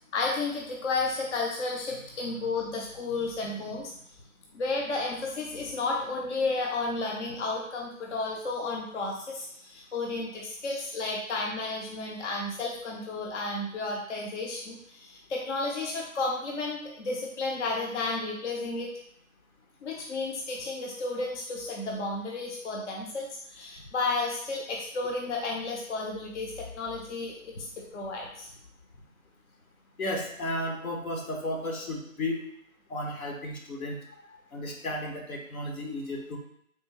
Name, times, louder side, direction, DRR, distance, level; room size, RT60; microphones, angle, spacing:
voice 1, 0.1-4.0 4.5-18.9 19.8-28.5, left 3 dB, 55° left, -1 dB, 0.6 m, -32 dB
voice 2, 30.0-32.4 32.9-34.0 34.5-36.4, left 1 dB, 85° left, 1 dB, 1.1 m, -33 dB
3.5 x 2.6 x 3.0 m, 0.71 s
figure-of-eight pair, 155°, 42 cm